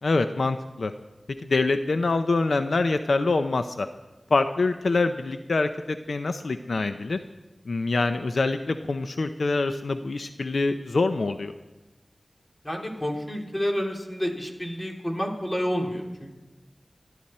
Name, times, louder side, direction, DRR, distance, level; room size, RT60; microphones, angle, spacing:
voice 1, 0.0-0.9 1.4-3.9 4.3-7.2 7.7-11.5, left 3 dB, 90° left, 9 dB, 0.6 m, -25 dB
voice 2, 12.6-16.3, equal, 25° left, 1 dB, 3.0 m, -29 dB
26.0 x 11.0 x 4.3 m, 1.1 s
wide cardioid pair, 50°, 0 cm